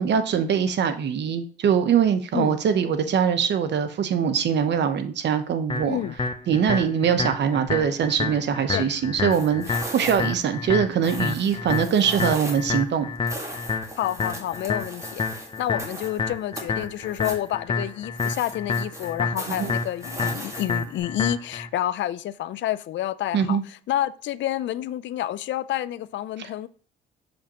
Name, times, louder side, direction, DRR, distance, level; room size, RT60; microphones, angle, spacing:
voice 1, 0.0-6.0 6.5-13.1 19.5-19.8 23.3-23.6, right 7 dB, 60° right, 0.9 m, -23 dB
sound 1, 5.7-21.7, left 4 dB, 25° left, 0.7 m, -29 dB
voice 2, 5.8-6.1 8.7-8.9 14.0-15.3 15.6-26.7, left 12 dB, 70° left, 0.4 m, -29 dB
sound 2, 9.3-10.4 11.0-12.8 13.3-16.2 16.6-17.5 18.2-21.0, right 1 dB, 15° right, 1.7 m, -38 dB
6.7 x 5.2 x 2.9 m
cardioid pair, 90°, 20 cm